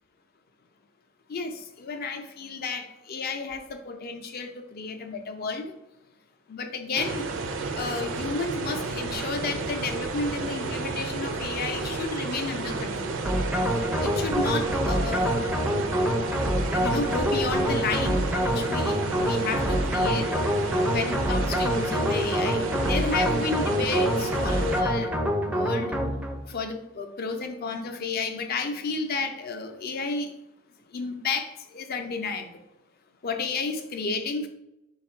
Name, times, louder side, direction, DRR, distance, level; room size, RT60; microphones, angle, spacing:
voice 1, 1.3-5.8 6.5-7.2 7.8-13.2 14.0-15.4 16.7-20.3 20.9-25.1 25.5-25.9 26.5-30.3 30.9-32.6 33.2-34.5, left 4 dB, 50° left, 6 dB, 0.5 m, -32 dB
sound 1, 7.0-24.8, right 3 dB, 70° right, 0.5 m, -32 dB
sound 2, 13.3-26.4, equal, 5° right, 0.4 m, -26 dB
4.2 x 2.4 x 4.2 m, 0.91 s
head